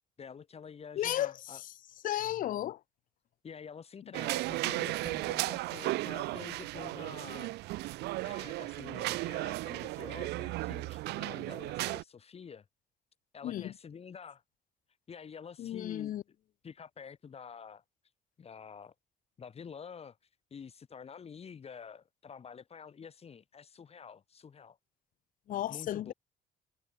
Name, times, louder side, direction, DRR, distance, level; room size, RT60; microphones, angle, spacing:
voice 1, 0.2-1.6 3.4-7.5 8.2-12.6 13.3-14.4 15.1-16.2 16.6-17.8 18.4-18.9 19.4-20.2 20.5-24.8 25.7-26.1, left 6 dB, 35° left, 4.3 m, -48 dB
voice 2, 1.0-1.3 2.0-2.8 13.4-13.7 15.6-16.2 25.5-26.1, left 12 dB, 55° left, 0.7 m, -33 dB
sound 1, 4.1-12.0, right 19 dB, 80° right, 0.6 m, -35 dB
cardioid pair, 110°, 17 cm